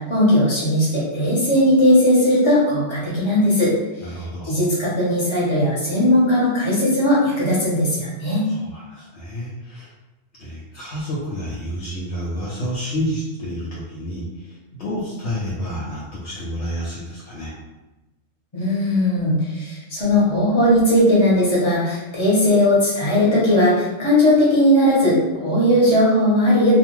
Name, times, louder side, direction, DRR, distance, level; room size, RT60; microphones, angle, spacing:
voice 1, 0.1-3.7 4.4-8.5 18.5-26.7, left 1 dB, 25° left, -8 dB, 1.0 m, -18 dB
voice 2, 4.0-4.5 8.5-9.9 10.4-17.5, equal, 65° left, -6 dB, 0.8 m, -29 dB
2.4 x 2.3 x 3.0 m, 1.0 s
omnidirectional pair, 1.3 m